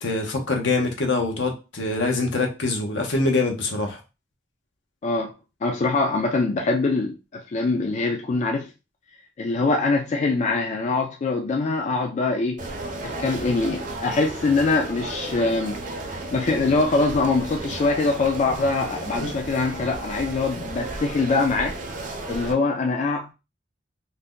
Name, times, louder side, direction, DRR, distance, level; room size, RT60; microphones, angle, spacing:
voice 1, 0.0-4.0 19.2-19.3, left 3 dB, 75° left, 0.8 m, -24 dB
voice 2, 5.6-8.7 9.4-12.6 13.0-15.8 16.3-21.8 22.3-23.3, left 3 dB, 40° left, 0.3 m, -23 dB
sound 1, 12.6-22.5, right 2 dB, 45° right, 0.5 m, -34 dB
2.7 x 2.1 x 3.5 m
head